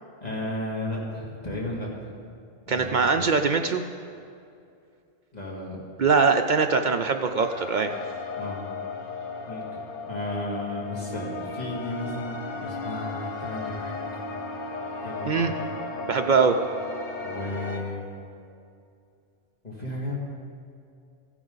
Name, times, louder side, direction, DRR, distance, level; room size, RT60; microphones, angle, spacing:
voice 1, 0.2-2.1 2.7-3.2 5.3-5.8 8.4-8.6 9.5-14.2 15.0-15.7 17.2-18.1 19.6-20.2, left 1 dB, 30° left, -5 dB, 2.5 m, -34 dB
voice 2, 2.7-3.8 6.0-8.0 15.2-15.5 16.1-16.6, right 5 dB, 65° right, 6 dB, 0.4 m, -22 dB
sound 1, 7.4-17.8, left 3 dB, 50° left, 1.1 m, -35 dB
15.0 x 10.5 x 3.9 m, 2.5 s
omnidirectional pair, 1.3 m